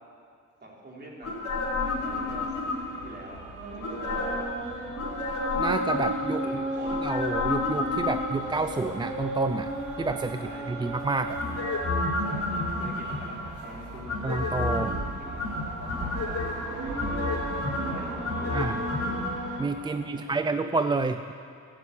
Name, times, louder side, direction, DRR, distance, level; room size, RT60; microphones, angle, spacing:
voice 1, 0.6-3.4 3.8-4.6 6.4-7.1 10.3-10.9 12.2-14.3 14.8-16.4 16.8-17.3 17.8-19.2 19.8-20.6, right 1 dB, 35° right, -3 dB, 3.4 m, -45 dB
sound 1, 1.2-3.1 3.8-4.5 5.0-6.4 6.9-8.6 11.4-13.5 14.1-15.0 15.4-16.5 17.0-19.3 19.6-19.7, left 3 dB, 50° left, 4.2 m, -30 dB
sound 2, 1.6-19.6, right 1 dB, 75° right, 2.8 m, -36 dB
voice 2, 5.5-6.5 7.0-9.7 10.0-10.4 10.7-11.4 14.2-14.9 18.5-18.8 19.6-21.3, right 3 dB, 15° right, 9 dB, 0.3 m, -29 dB
14.0 x 8.4 x 8.5 m, 2.4 s
cardioid pair, 90°, 30 cm